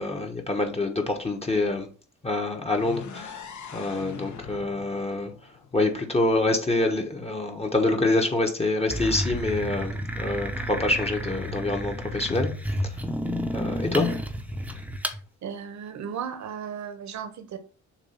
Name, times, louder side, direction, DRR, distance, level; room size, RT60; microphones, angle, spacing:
voice 1, 0.0-1.9 2.2-3.4 3.7-5.3 5.7-12.5 13.5-14.1, left 2 dB, 20° left, 1.2 m, -26 dB
sound 1, 2.7-6.6, left 6 dB, 70° left, 1.2 m, -42 dB
sound 2, 8.9-15.2, equal, 5° right, 0.8 m, -31 dB
voice 2, 15.4-17.6, right 7 dB, 65° right, 1.2 m, -35 dB
7.2 x 2.6 x 5.7 m
cardioid pair, 90°, 30 cm